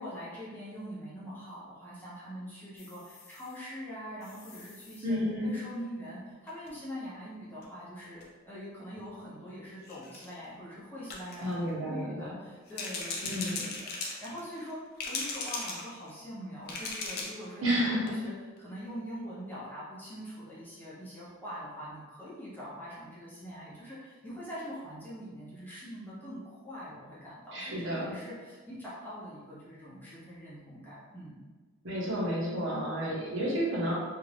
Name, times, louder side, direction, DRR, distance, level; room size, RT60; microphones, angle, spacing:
voice 1, 0.0-18.3 18.6-31.4, equal, 10° left, -9 dB, 0.7 m, -43 dB
sound 1, 2.8-3.6 4.2-5.0 6.5-6.7 7.6-7.7 8.0-8.2 9.0-9.1 9.8-10.3 11.1-11.5 12.7-14.7 15.0-16.2 16.7-17.5 17.8-17.9 18.1-18.2, left 3 dB, 45° left, 0.4 m, -39 dB
voice 2, 5.0-5.6 11.4-12.3 13.2-13.6 17.6-18.1 27.5-28.2 31.8-33.9, equal, 65° right, -5 dB, 0.8 m, -31 dB
2.6 x 2.4 x 3.2 m, 1.4 s
head